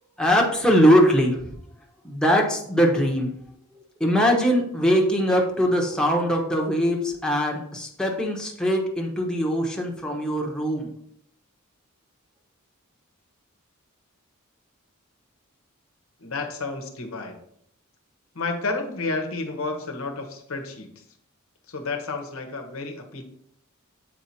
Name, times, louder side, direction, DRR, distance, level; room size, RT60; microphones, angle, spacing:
voice 1, 0.2-1.4 2.0-3.3 4.0-10.9, equal, 5° left, -1 dB, 1.0 m, -21 dB
voice 2, 16.2-17.4 18.3-21.0 21.7-23.2, left 3 dB, 70° left, 4 dB, 1.2 m, -31 dB
7.9 x 4.5 x 4.2 m, 0.70 s
head